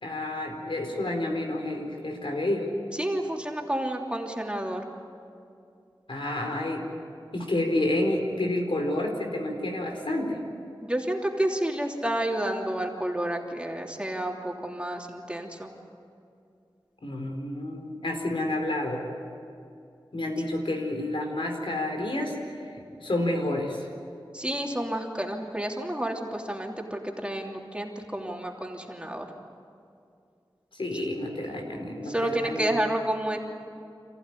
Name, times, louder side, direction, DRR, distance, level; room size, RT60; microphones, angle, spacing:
voice 1, 0.0-2.7 6.1-6.8 7.3-10.4 17.0-19.0 20.1-22.6 23.0-23.9 30.7-32.7, left 1 dB, 80° left, 2 dB, 4.4 m, -29 dB
voice 2, 3.0-4.8 10.8-15.7 24.3-29.3 32.0-33.4, right 1 dB, 10° right, 0 dB, 3.1 m, -30 dB
28.5 x 15.0 x 9.9 m, 2.5 s
wide cardioid pair, 50°, 9 cm